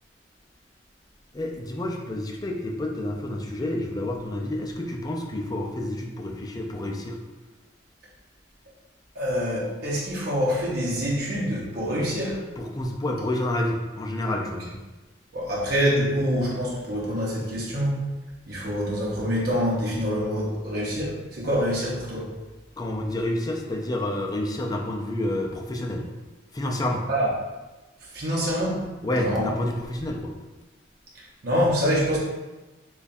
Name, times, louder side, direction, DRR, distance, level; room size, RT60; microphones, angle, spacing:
voice 1, 1.3-7.2 12.6-14.7 22.8-26.1 26.5-27.1 29.0-30.4, left 1 dB, 20° left, 0 dB, 0.4 m, -29 dB
voice 2, 9.1-12.4 15.3-18.0 18.5-22.3 27.1-27.3 28.1-28.8 29.2-29.5 31.4-32.2, equal, 55° right, -5 dB, 0.8 m, -25 dB
3.3 x 2.3 x 4.1 m, 1.1 s
head